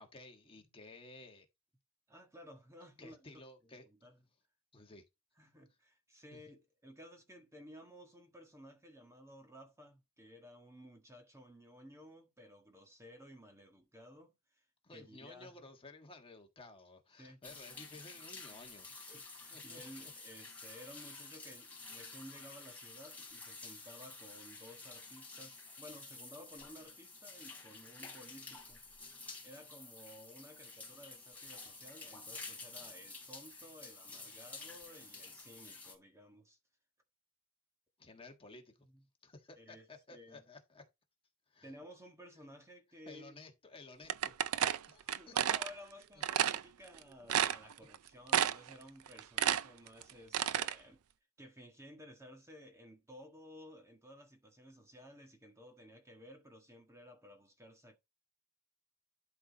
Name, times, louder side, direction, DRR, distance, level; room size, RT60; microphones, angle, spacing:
voice 1, 0.0-1.5 3.0-4.1 4.7-5.0 6.3-6.4 14.8-18.9 19.5-20.1 38.0-38.7 39.2-40.8 41.5-41.7 43.0-44.3 44.9-45.5, left 2 dB, 25° left, 1.5 m, -55 dB
voice 2, 2.1-3.2 4.0-4.2 5.4-14.6 14.9-15.7 17.2-17.6 19.1-28.8 29.4-36.6 38.9-39.0 39.6-39.9 40.1-40.4 41.6-43.4 44.1-44.2 45.0-51.0 51.4-58.0, equal, 15° right, 1.5 m, -55 dB
sound 1, 17.4-35.9, left 3 dB, 5° left, 3.3 m, -50 dB
sound 2, 44.1-45.7 46.2-46.6 47.0-47.1 47.3-48.0 48.3-48.7 49.1-50.7, right 9 dB, 70° right, 0.5 m, -31 dB
11.5 x 4.1 x 4.1 m
head